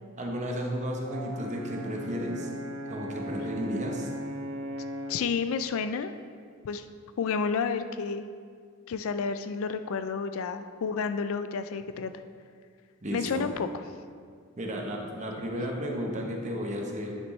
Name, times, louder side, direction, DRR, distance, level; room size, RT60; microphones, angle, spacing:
voice 1, 0.2-2.5 2.9-4.1 13.0-13.4 14.6-17.2, equal, 30° right, 0 dB, 1.0 m, -33 dB
Brass instrument, 1.0-5.3, equal, 60° right, 0.5 m, -37 dB
voice 2, 5.1-6.1 6.6-6.9 7.2-8.3 8.9-12.1 13.1-13.8, left 5 dB, 60° left, 10 dB, 0.4 m, -30 dB
9.9 x 6.1 x 3.2 m, 2.1 s
head